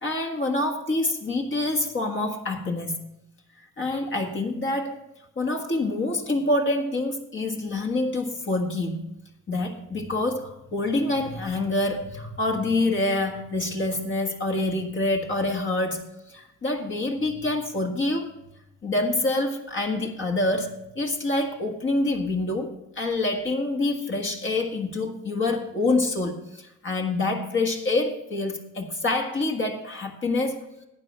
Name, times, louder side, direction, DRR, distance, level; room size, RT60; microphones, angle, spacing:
voice 1, 0.0-3.0 3.6-5.0 5.4-9.1 9.5-18.3 18.8-30.6, left 2 dB, 40° left, 2 dB, 1.6 m, -26 dB
12.0 x 8.8 x 4.4 m, 0.88 s
cardioid pair, 90°, 30 cm